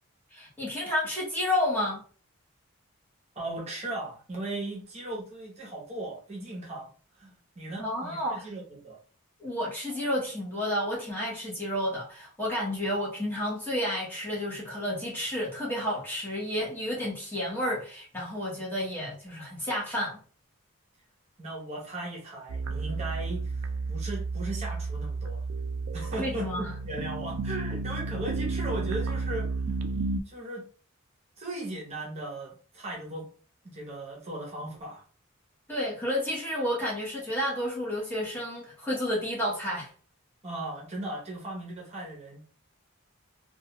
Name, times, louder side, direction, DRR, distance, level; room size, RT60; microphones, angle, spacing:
voice 1, 0.3-2.0 7.8-8.4 9.4-20.2 26.2-26.7 35.7-39.9, left 1 dB, 10° left, -6 dB, 0.8 m, -31 dB
voice 2, 3.3-9.0 21.4-25.4 25.9-29.5 30.3-30.7 31.4-33.3 33.6-35.0 40.4-42.4, right 2 dB, 30° right, -3 dB, 0.8 m, -37 dB
sound 1, 22.5-30.2, right 3 dB, 65° right, 0.3 m, -32 dB
2.3 x 2.2 x 2.9 m, 0.40 s
head